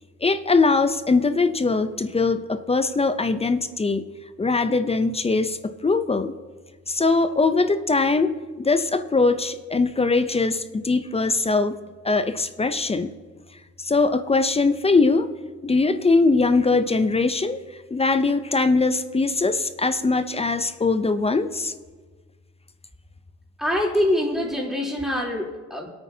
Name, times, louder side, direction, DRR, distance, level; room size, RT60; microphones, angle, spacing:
voice 1, 0.2-4.1 4.4-6.3 6.9-11.8 12.0-13.1 13.8-15.3 15.6-17.6 17.9-21.7, left 3 dB, 20° left, 10 dB, 0.5 m, -21 dB
voice 2, 23.6-25.9, left 1 dB, ahead, -3 dB, 3.4 m, -24 dB
22.5 x 8.8 x 2.8 m, 1.4 s
cardioid pair, 90°, 30 cm